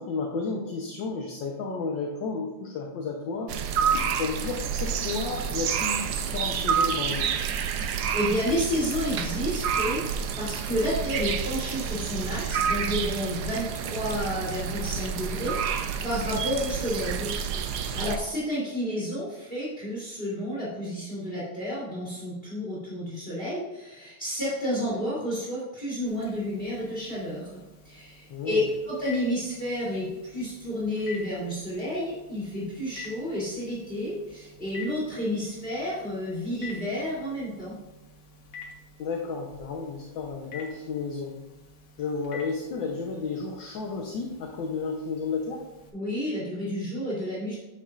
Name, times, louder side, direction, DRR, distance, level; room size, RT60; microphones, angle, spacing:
voice 1, 0.0-3.5 3.9-7.3 18.0-18.1 28.3-28.6 39.0-41.3 42.0-45.6, left 4 dB, 65° left, 0 dB, 1.6 m, -32 dB
sound 1, 3.5-18.2, right 7 dB, 70° right, 1.0 m, -29 dB
voice 2, 7.8-10.0 10.4-17.3 17.6-37.8 45.9-47.5, equal, 25° left, -7 dB, 3.3 m, -31 dB
Telephone, 26.1-45.9, left 3 dB, 80° left, 2.3 m, -48 dB
9.6 x 8.3 x 2.5 m, 1.1 s
omnidirectional pair, 2.3 m